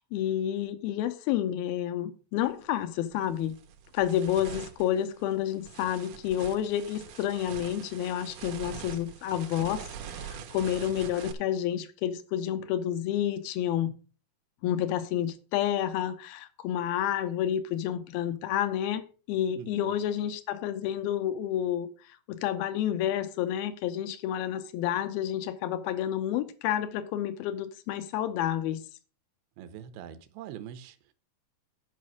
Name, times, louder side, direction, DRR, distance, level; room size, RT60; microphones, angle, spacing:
voice 1, 0.1-3.6 3.9-14.0 14.6-19.0 19.3-21.9 22.3-28.8, left 11 dB, 80° left, 2.7 m, -30 dB
sound 1, 2.5-2.6 3.1-11.3, right 8 dB, 65° right, 2.2 m, -43 dB
voice 2, 19.6-19.9 29.6-31.1, right 9 dB, 85° right, 2.8 m, -44 dB
9.9 x 5.5 x 6.2 m
omnidirectional pair, 4.3 m